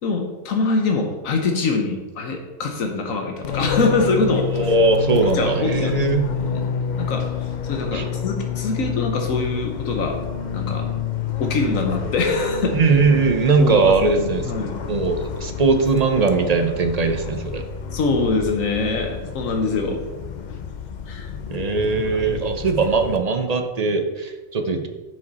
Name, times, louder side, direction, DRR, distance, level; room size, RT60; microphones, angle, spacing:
voice 1, 0.0-4.7 5.1-6.7 7.0-7.3 7.6-10.2 10.5-10.9 11.4-12.8 13.6-14.8 17.9-20.0 21.1-21.3 22.0-22.5, left 3 dB, 80° left, 3 dB, 1.4 m, -24 dB
Fixed-wing aircraft airplane, 3.4-23.2, left 7 dB, 55° left, 0.5 m, -29 dB
voice 2, 4.5-6.3 7.9-8.1 12.7-14.5 14.9-17.7 21.5-24.9, right 4 dB, 40° right, 6 dB, 0.6 m, -20 dB
7.2 x 6.5 x 4.2 m, 1.2 s
omnidirectional pair, 1.4 m